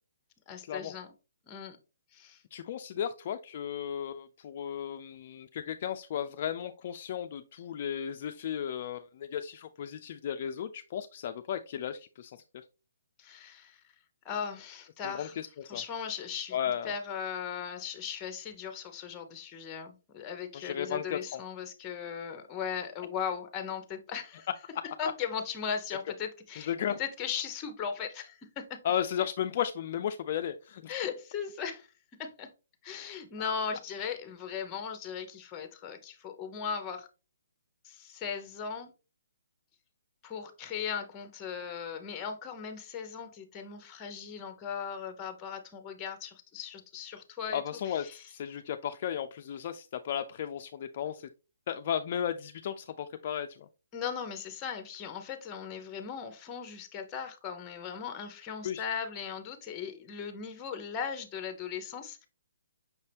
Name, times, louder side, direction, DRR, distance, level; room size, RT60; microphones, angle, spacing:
voice 1, 0.5-1.1 1.5-1.8 2.1-2.4 13.2-13.8 14.2-15.3 15.7-16.6 16.8-24.5 25.0-26.7 27.0-28.8 30.9-31.9 32.2-32.5 32.8-37.1 37.8-38.9 40.2-47.6 47.9-48.2 53.9-62.3, left 7 dB, 20° left, 0.8 m, -38 dB
voice 2, 2.5-12.4 15.0-15.8 16.5-16.9 20.5-21.4 26.7-27.0 28.8-30.9 47.5-51.3 51.7-53.7 58.6-58.8, left 9 dB, 45° left, 0.3 m, -35 dB
5.9 x 2.7 x 3.3 m
hypercardioid pair, 155°, 0 cm